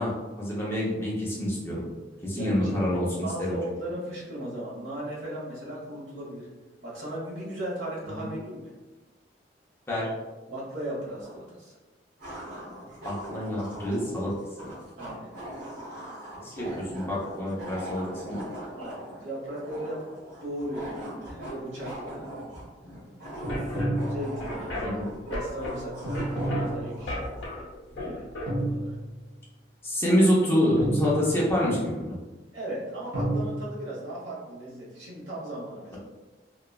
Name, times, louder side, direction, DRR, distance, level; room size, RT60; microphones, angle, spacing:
voice 1, 0.0-1.8 2.2-3.1 3.4-3.7 8.1-8.3 9.9-10.1 13.0-14.3 14.6-14.7 16.3-18.4 24.8-25.1 29.8-32.1, equal, 15° left, -7 dB, 0.6 m, -27 dB
voice 2, 2.3-6.5 6.8-8.6 10.5-11.8 15.0-15.3 18.8-20.1 20.4-22.2 23.4-24.9 25.3-27.3 28.0-28.2 28.6-28.9 32.5-36.0, right 1 dB, 85° right, -6 dB, 1.1 m, -37 dB
sound 1, 11.2-11.3 12.2-27.6, right 1 dB, 50° right, 1.0 m, -41 dB
sound 2, 23.3-28.5, left 1 dB, 75° left, 0.8 m, -36 dB
sound 3, 23.4-24.7 26.0-27.3 28.5-29.4 30.8-31.7 33.1-33.5, right 1 dB, 15° right, 1.1 m, -30 dB
3.0 x 2.2 x 2.2 m, 1.2 s
head